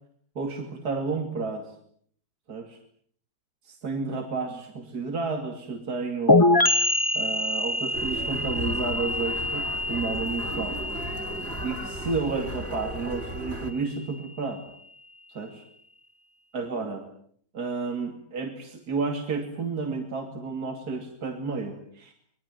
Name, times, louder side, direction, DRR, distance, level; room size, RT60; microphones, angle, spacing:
voice 1, 0.3-1.7 2.5-2.8 3.6-6.6 7.1-10.8 11.6-14.6 15.3-15.6 16.5-17.0 17.5-22.1, right 4 dB, 60° right, 4 dB, 3.1 m, -31 dB
sound 1, 6.3-13.8, left 2 dB, 15° left, 1.2 m, -26 dB
sound 2, 7.9-13.7, right 1 dB, 35° right, 3.9 m, -35 dB
26.5 x 21.5 x 9.2 m, 0.63 s
omnidirectional pair, 1.9 m